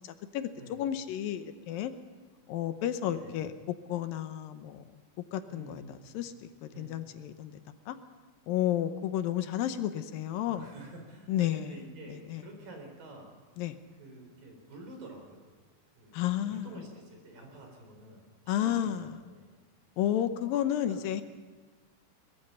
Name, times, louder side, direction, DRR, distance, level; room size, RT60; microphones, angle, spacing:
voice 1, 0.0-1.9 2.5-3.5 3.9-4.8 5.3-6.3 6.6-7.6 7.9-8.0 8.5-10.7 11.3-11.8 12.1-12.5 13.6-13.8 16.1-16.7 18.5-19.1 20.0-21.2, left 11 dB, 75° left, 10 dB, 2.6 m, -32 dB
voice 2, 0.5-0.9 3.1-3.4 5.5-5.9 6.7-7.0 10.6-13.3 14.0-15.4 16.0-19.6 20.9-21.1, right 2 dB, 65° right, 2 dB, 5.9 m, -49 dB
22.0 x 21.0 x 5.6 m, 1.4 s
omnidirectional pair, 4.2 m